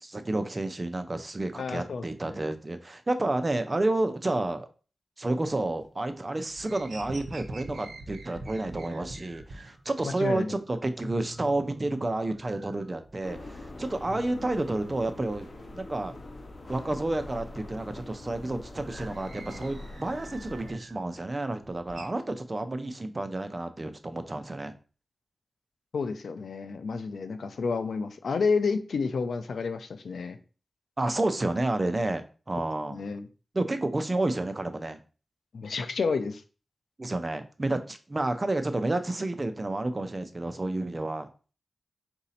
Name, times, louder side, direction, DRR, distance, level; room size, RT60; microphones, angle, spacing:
voice 1, 0.0-4.7 5.2-15.5 15.7-16.2 16.7-24.7 31.0-33.0 33.5-35.0 37.0-41.3, right 2 dB, 35° right, 8 dB, 0.6 m, -30 dB
voice 2, 1.6-2.4 10.0-10.5 25.9-30.4 32.9-33.3 35.5-36.4, left 4 dB, 90° left, 9 dB, 0.4 m, -30 dB
sound 1, 5.3-6.1 6.4-9.8 10.2-10.3 10.6-10.7 10.9-13.4 13.7-16.3 16.6-21.1 21.4-22.1, right 2 dB, 85° right, 0.7 m, -45 dB
sound 2, 13.2-20.7, left 2 dB, 55° left, 0.9 m, -44 dB
4.1 x 2.7 x 4.1 m, 0.36 s
cardioid pair, 65°, 0 cm